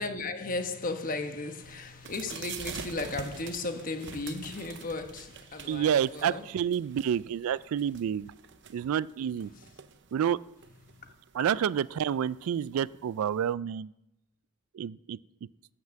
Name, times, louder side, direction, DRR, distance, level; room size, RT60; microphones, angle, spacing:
voice 1, 0.0-6.5, left 3 dB, 40° left, 1.1 m, -35 dB
sound 1, 1.6-13.5, right 6 dB, 55° right, 0.7 m, -47 dB
voice 2, 5.7-8.3 8.7-9.5 10.1-10.4 11.3-13.9 14.7-15.2, right 9 dB, 70° right, 0.3 m, -29 dB
13.0 x 5.9 x 7.6 m
head